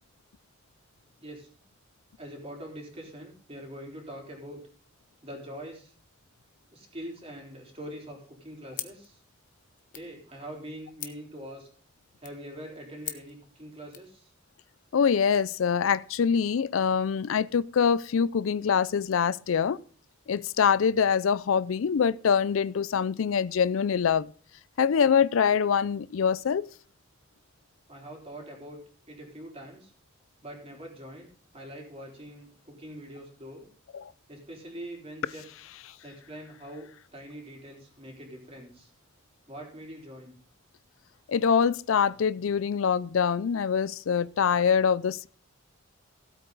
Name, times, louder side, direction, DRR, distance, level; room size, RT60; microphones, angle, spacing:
voice 1, 2.2-4.6 5.2-5.9 6.7-9.2 9.9-11.7 12.2-14.3 27.9-28.8 29.1-29.9 30.4-31.3 31.5-33.7 34.3-35.4 36.0-38.9 39.5-40.3, equal, 30° right, 4.0 m, -43 dB
sound 1, 8.7-14.1, left 11 dB, 40° left, 1.2 m, -45 dB
voice 2, 14.9-19.8 20.3-24.3 24.8-26.7 33.9-34.1 41.3-45.3, left 7 dB, 80° left, 0.4 m, -24 dB
16.5 x 8.4 x 4.0 m
head